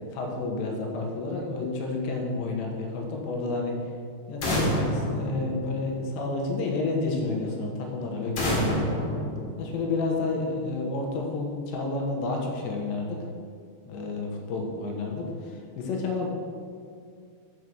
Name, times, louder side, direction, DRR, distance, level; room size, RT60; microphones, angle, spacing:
voice 1, 0.1-3.8 4.3-9.0 9.6-13.2 13.9-16.3, left 3 dB, 90° left, 1 dB, 3.4 m, -30 dB
sound 1, 4.4-6.2 8.4-10.1, equal, 50° left, 2.5 m, -28 dB
8.2 x 5.4 x 6.2 m, 2.2 s
omnidirectional pair, 4.8 m